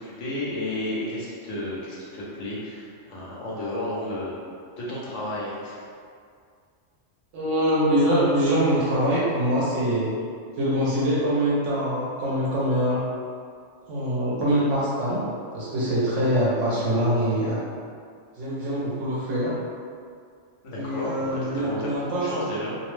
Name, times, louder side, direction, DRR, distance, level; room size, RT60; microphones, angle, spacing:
voice 1, 0.0-4.4 4.8-5.8 20.6-22.8, left 1 dB, 75° left, -6 dB, 1.0 m, -32 dB
voice 2, 7.3-10.1 10.6-13.0 13.9-15.2 15.5-17.6 18.4-19.5 20.7-22.5, equal, 80° right, -7 dB, 0.9 m, -24 dB
2.6 x 2.0 x 3.1 m, 2.2 s
omnidirectional pair, 1.3 m